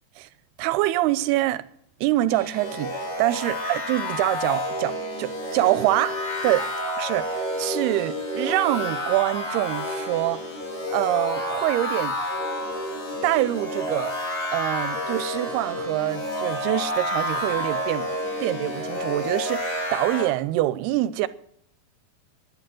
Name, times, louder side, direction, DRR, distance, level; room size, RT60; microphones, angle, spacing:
voice 1, 0.6-1.6 2.0-6.2 6.4-6.7 7.0-10.4 10.9-12.2 13.2-14.2 14.5-21.3, right 16 dB, 90° right, 2.7 m, -25 dB
sound 1, 2.3-20.2, left 1 dB, 50° left, 5.7 m, -29 dB
11.5 x 10.5 x 7.7 m
omnidirectional pair, 4.5 m